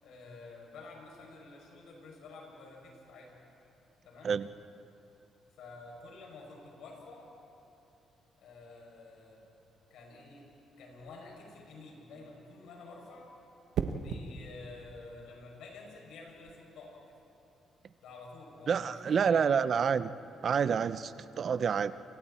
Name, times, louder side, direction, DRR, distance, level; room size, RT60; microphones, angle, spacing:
voice 1, 0.0-3.3 4.0-4.3 5.6-7.3 8.4-9.4 9.9-10.5 10.8-13.3 13.9-17.2 18.0-19.4, left 3 dB, 80° left, -1 dB, 7.1 m, -50 dB
sound 1, 13.7-14.3 16.3-16.5, right 7 dB, 80° right, 1.2 m, -35 dB
voice 2, 18.7-20.1 20.4-21.9, right 6 dB, 50° right, 13 dB, 0.8 m, -28 dB
29.5 x 26.5 x 4.4 m, 2.9 s
cardioid pair, 90°, 0 cm